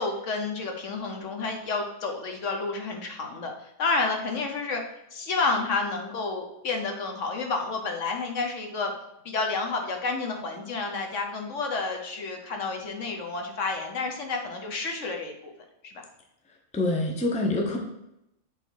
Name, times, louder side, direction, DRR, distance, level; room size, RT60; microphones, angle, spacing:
voice 1, 0.0-3.5 3.8-4.8 5.1-8.9 9.2-15.5 15.8-16.0, left 3 dB, 60° left, 3 dB, 1.2 m, -30 dB
voice 2, 16.7-17.8, left 2 dB, 5° left, 1 dB, 0.6 m, -25 dB
7.1 x 3.8 x 4.6 m, 0.85 s
omnidirectional pair, 1.5 m